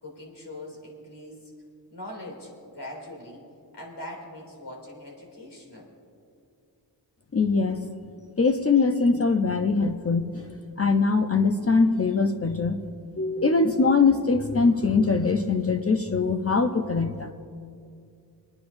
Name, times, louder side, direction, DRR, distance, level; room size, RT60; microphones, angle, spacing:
voice 1, 0.0-1.5 1.9-3.4 3.7-5.9, left 1 dB, 65° left, -2 dB, 2.9 m, -41 dB
voice 2, 7.3-7.8 8.4-12.8 13.2-17.3, left 4 dB, 35° left, 5 dB, 0.6 m, -22 dB
28.0 x 9.7 x 2.6 m, 2.4 s
wide cardioid pair, 70°, 43 cm